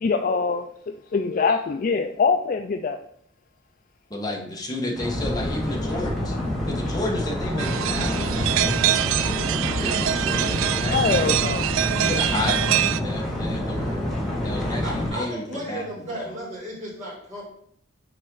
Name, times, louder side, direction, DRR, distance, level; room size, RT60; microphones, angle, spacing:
voice 1, 0.0-0.6 1.1-3.0 10.9-11.6, left 5 dB, 40° left, 6 dB, 0.3 m, -23 dB
voice 2, 4.1-6.3 6.6-11.8 12.0-14.1 14.4-16.4, left 1 dB, 20° left, -1 dB, 1.3 m, -32 dB
sound 1, 5.0-15.1, left 1 dB, ahead, 1.6 m, -27 dB
sound 2, 7.6-13.0, right 11 dB, 75° right, 0.3 m, -24 dB
voice 3, 14.8-17.4, right 1 dB, 35° right, -6 dB, 3.0 m, -34 dB
7.6 x 4.3 x 3.9 m, 0.68 s
head